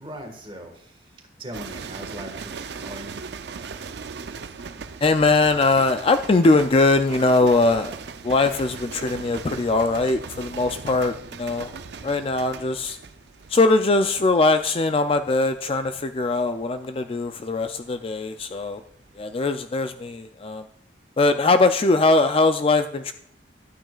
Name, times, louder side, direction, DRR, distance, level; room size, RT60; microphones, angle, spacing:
voice 1, 0.0-3.3, right 1 dB, 25° right, 4 dB, 1.6 m, -40 dB
sound 1, 1.5-18.8 19.0-19.4, right 5 dB, 60° right, 0.5 m, -39 dB
voice 2, 5.0-7.9 8.2-11.7 12.0-13.0 13.5-18.8 19.2-20.6 21.2-23.1, left 3 dB, 30° left, 9 dB, 0.4 m, -21 dB
12.5 x 8.9 x 2.4 m, 0.69 s
head